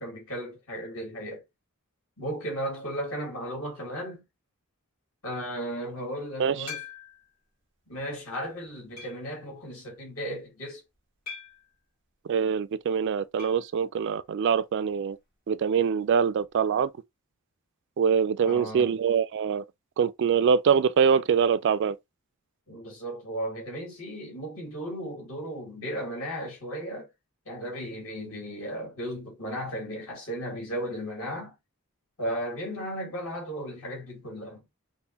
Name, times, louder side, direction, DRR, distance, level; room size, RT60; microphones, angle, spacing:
voice 1, 0.0-1.4 2.2-4.2 5.2-6.8 7.9-10.8 18.4-18.9 22.7-27.1 27.5-31.5 32.2-34.6, equal, 70° left, 2.6 m, -35 dB
sound 1, 6.7-7.4 8.0-8.1 9.0-9.4 11.3-11.7 13.4-13.7 13.9-14.0 14.3-14.4 16.4-16.5, left 7 dB, 40° left, 2.9 m, -42 dB
voice 2, 12.2-15.2 15.5-16.9 18.0-19.6 20.0-22.0, right 6 dB, 55° right, 0.3 m, -24 dB
5.3 x 2.1 x 2.8 m
head